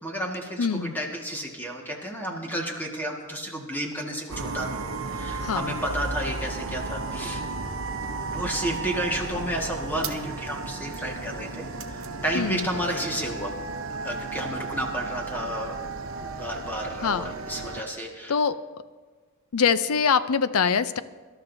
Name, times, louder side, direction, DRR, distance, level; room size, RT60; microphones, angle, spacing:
voice 1, 0.0-7.4 8.3-13.5 14.0-15.8 16.2-18.3, right 1 dB, 10° left, 0 dB, 1.7 m, -32 dB
voice 2, 0.6-0.9 5.4-5.8 12.3-12.7 17.0-17.3 18.3-18.6 19.5-21.0, left 6 dB, 85° left, 14 dB, 0.6 m, -24 dB
sound 1, 4.3-17.8, right 3 dB, 65° right, 0.9 m, -34 dB
24.5 x 12.5 x 2.7 m, 1.4 s
head